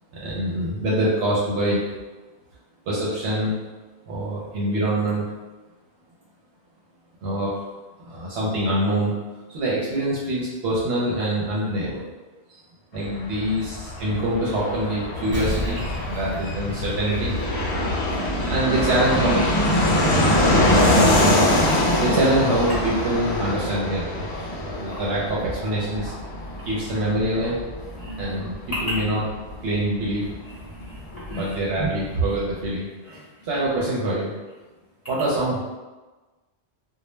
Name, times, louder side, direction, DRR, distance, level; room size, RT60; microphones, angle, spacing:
voice 1, 0.1-1.8 2.9-3.6 4.1-5.2 7.2-7.5 8.0-9.1 9.5-12.0 12.5-12.6 12.9-17.3 18.3-19.4 22.0-26.1 26.6-27.6 28.2-28.5 28.8-29.2 29.6-30.2 31.3-32.9 33.4-34.3 35.1-35.6, right 1 dB, 75° right, -6 dB, 0.8 m, -25 dB
Fixed-wing aircraft airplane, 12.9-31.3 31.6-31.7 31.9-32.6, left 1 dB, 80° left, 0.8 m, -23 dB
Explosion, 15.3-17.9 18.3-18.4, equal, 15° right, 0.4 m, -32 dB
voice 2, 17.9-18.4 21.6-21.8 24.9-25.0 28.0-28.4 30.7-31.9 33.1-33.2, right 2 dB, 45° left, -9 dB, 0.5 m, -36 dB
2.2 x 2.0 x 3.0 m, 1.2 s
omnidirectional pair, 1.1 m